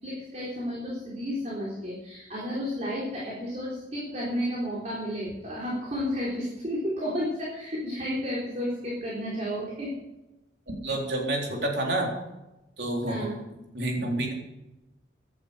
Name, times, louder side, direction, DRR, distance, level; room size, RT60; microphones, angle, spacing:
voice 1, 0.0-9.9 13.1-13.4, equal, 35° right, -5 dB, 4.1 m, -32 dB
voice 2, 10.7-12.1 12.8-13.3 13.7-14.3, right 1 dB, 60° right, -1 dB, 3.9 m, -28 dB
16.0 x 11.5 x 5.2 m, 0.97 s
head